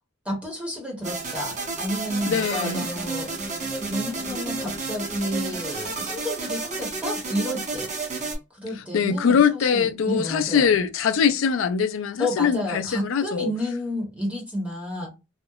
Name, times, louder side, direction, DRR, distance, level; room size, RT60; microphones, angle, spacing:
voice 1, 0.2-3.3 3.8-7.9 8.5-10.7 12.2-15.1, left 1 dB, 5° right, 0.8 m, -30 dB
sound 1, 1.0-8.3, right 3 dB, 35° right, 0.7 m, -31 dB
voice 2, 2.3-2.8 8.9-13.5, left 6 dB, 70° left, 0.4 m, -22 dB
2.8 x 2.0 x 2.2 m
head